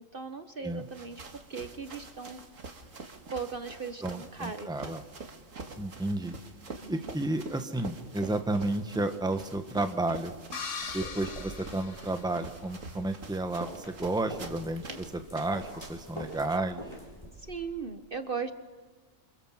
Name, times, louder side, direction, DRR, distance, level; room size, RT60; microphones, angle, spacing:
voice 1, 0.1-1.2 1.5-2.4 3.3-5.0 6.8-7.1 17.5-18.5, right 5 dB, 45° right, 9 dB, 1.2 m, -38 dB
sound 1, 0.7-16.7, right 3 dB, 70° right, 2.4 m, -46 dB
voice 2, 4.0-5.0 5.8-6.4 6.9-10.3 10.9-16.8, right 2 dB, 5° right, 7 dB, 1.2 m, -32 dB
sound 2, 10.5-12.7, left 5 dB, 65° left, 1.8 m, -40 dB
sound 3, 10.8-17.5, equal, 20° left, 7.1 m, -46 dB
28.5 x 27.0 x 7.5 m, 1.4 s
omnidirectional pair, 1.4 m